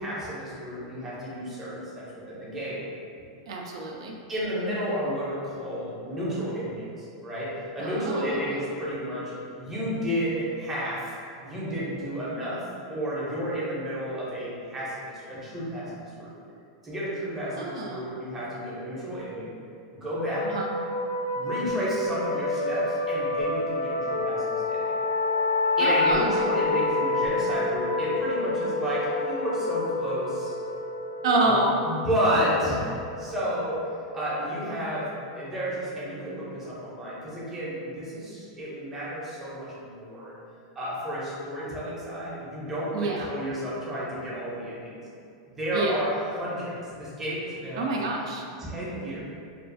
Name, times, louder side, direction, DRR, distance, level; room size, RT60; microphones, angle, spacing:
voice 1, 0.0-2.8 4.3-11.1 11.4-16.3 16.8-19.5 20.0-20.5 21.3-24.8 25.8-30.5 31.5-31.6 31.9-33.9 34.1-40.3 40.8-45.0 45.5-47.9 48.6-49.2, equal, 10° right, -8 dB, 0.5 m, -31 dB
voice 2, 3.5-4.1 7.8-8.4 17.6-18.1 20.4-20.7 25.8-26.5 31.2-31.7 42.9-43.3 45.7-46.0 47.8-48.4, right 2 dB, 85° right, 0 dB, 0.3 m, -27 dB
sound 1, 20.2-35.5, left 2 dB, 90° left, 0.5 m, -29 dB
2.3 x 2.3 x 2.5 m, 2.4 s
supercardioid pair, 165°, 3 cm